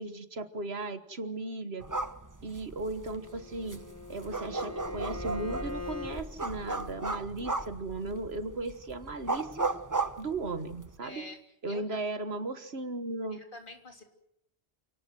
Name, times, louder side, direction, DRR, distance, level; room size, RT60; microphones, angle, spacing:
voice 1, 0.0-1.8 2.4-3.8 4.1-9.7 10.2-11.2 11.6-13.4, right 2 dB, 70° right, 10 dB, 1.8 m, -36 dB
sound 1, 1.8-11.0, right 3 dB, 20° right, 0.9 m, -36 dB
Bowed string instrument, 3.1-6.3, left 5 dB, 15° left, 1.8 m, -42 dB
voice 2, 11.0-11.4 11.7-12.0 13.3-14.0, left 2 dB, 50° left, 3 dB, 3.4 m, -46 dB
28.5 x 18.5 x 7.9 m, 0.75 s
omnidirectional pair, 1.1 m